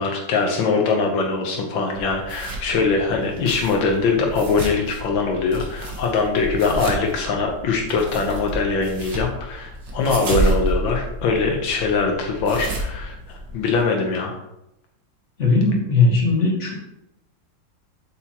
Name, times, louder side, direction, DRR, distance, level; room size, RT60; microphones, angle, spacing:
voice 1, 0.0-13.1 13.5-14.4, left 4 dB, 80° left, 2 dB, 1.7 m, -22 dB
sound 1, 1.9-13.8, right 1 dB, 65° right, 2.2 m, -30 dB
voice 2, 15.4-16.7, left 3 dB, 40° left, -1 dB, 2.0 m, -18 dB
8.1 x 7.3 x 2.9 m, 0.85 s
omnidirectional pair, 2.1 m